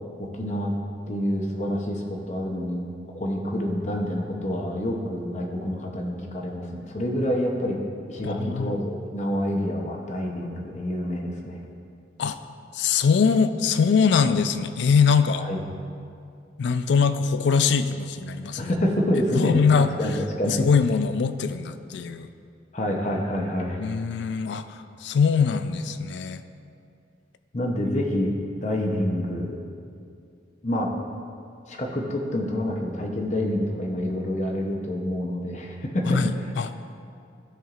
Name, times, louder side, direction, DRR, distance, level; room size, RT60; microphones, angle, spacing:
voice 1, 0.2-0.7 1.1-7.8 8.1-11.6 15.4-15.6 18.6-19.6 20.0-20.6 22.7-23.8 27.5-28.3 28.6-29.6 30.6-30.9 31.7-36.2, left 1 dB, 40° left, 0 dB, 0.7 m, -27 dB
voice 2, 8.2-8.8 12.2-12.4 12.7-15.5 16.6-18.7 19.3-19.9 20.5-22.3 23.8-26.4 36.1-36.9, left 5 dB, 70° left, 11 dB, 0.3 m, -22 dB
13.5 x 4.5 x 2.5 m, 2.4 s
head